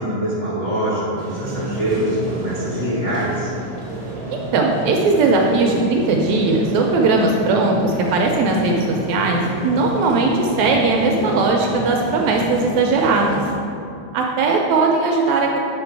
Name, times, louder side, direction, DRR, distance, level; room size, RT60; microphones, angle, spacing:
voice 1, 0.0-3.5, right 1 dB, 75° left, -9 dB, 0.6 m, -24 dB
sound 1, 1.2-13.5, right 1 dB, 65° right, 0.9 m, -30 dB
voice 2, 4.3-13.4 14.1-15.6, right 3 dB, 80° right, 1 dB, 1.7 m, -18 dB
7.1 x 5.1 x 4.5 m, 2.6 s
omnidirectional pair, 3.6 m